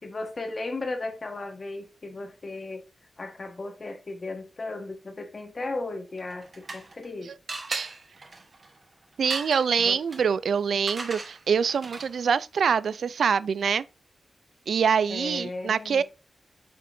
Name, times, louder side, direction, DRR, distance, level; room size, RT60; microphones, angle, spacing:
voice 1, 0.0-2.9 3.2-7.3 9.8-10.0 15.1-16.0, left 2 dB, 35° left, 1.4 m, -35 dB
sound 1, 6.2-7.1 7.5-12.3, right 3 dB, 35° right, 1.1 m, -39 dB
voice 2, 9.2-13.9 14.7-16.0, right 6 dB, 90° right, 0.3 m, -25 dB
8.7 x 5.5 x 2.6 m
wide cardioid pair, 165°, 0 cm